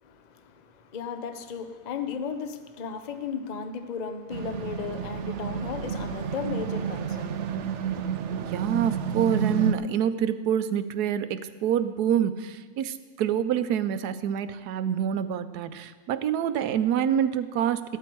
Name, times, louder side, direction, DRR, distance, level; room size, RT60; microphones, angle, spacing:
voice 1, 0.0-8.2, left 6 dB, 35° left, 8 dB, 0.7 m, -35 dB
sound 1, 4.3-9.7, right 7 dB, 60° right, 0.8 m, -30 dB
voice 2, 8.5-17.8, right 9 dB, 80° right, 12 dB, 1.2 m, -26 dB
15.0 x 13.0 x 4.6 m, 1.5 s
omnidirectional pair, 1.7 m